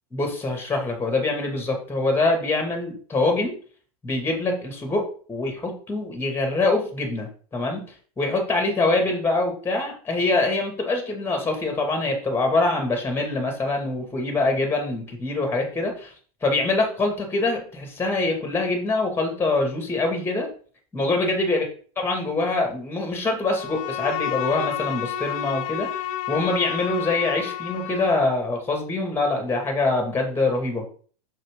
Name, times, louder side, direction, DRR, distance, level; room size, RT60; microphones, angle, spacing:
voice 1, 0.1-3.6 4.0-7.8 8.2-16.1 16.4-20.5 20.9-21.7 22.0-30.8, left 2 dB, 10° left, 3 dB, 2.3 m, -24 dB
Bowed string instrument, 23.5-28.3, left 11 dB, 60° left, 0.8 m, -30 dB
6.5 x 5.8 x 3.8 m, 0.43 s
hypercardioid pair, 105°, 20 cm